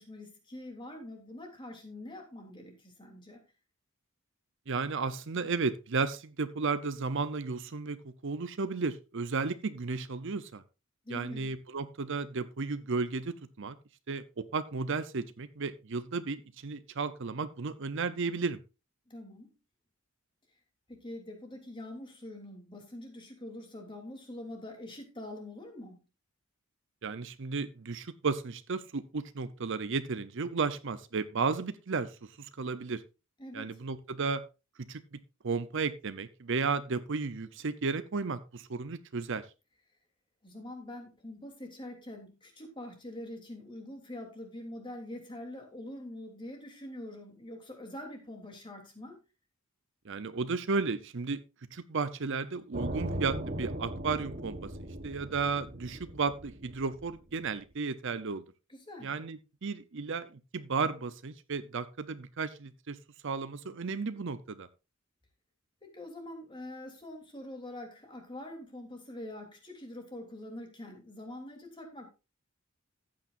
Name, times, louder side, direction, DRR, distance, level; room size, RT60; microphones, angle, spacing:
voice 1, 0.0-3.4 11.0-11.6 19.1-19.5 20.9-26.0 33.4-33.8 40.4-49.2 58.7-59.2 65.8-72.1, left 1 dB, 25° left, 2 dB, 3.1 m, -44 dB
voice 2, 4.7-8.0 8.2-10.6 11.1-13.8 14.1-18.6 27.0-33.0 33.5-34.4 34.9-35.0 35.4-39.4 50.1-51.4 51.7-54.7 55.0-58.4 59.0-63.0 63.2-64.7, right 4 dB, 60° right, 13 dB, 0.7 m, -34 dB
sound 1, 52.7-57.6, right 1 dB, 40° right, 1.1 m, -39 dB
14.5 x 8.8 x 2.6 m, 0.29 s
head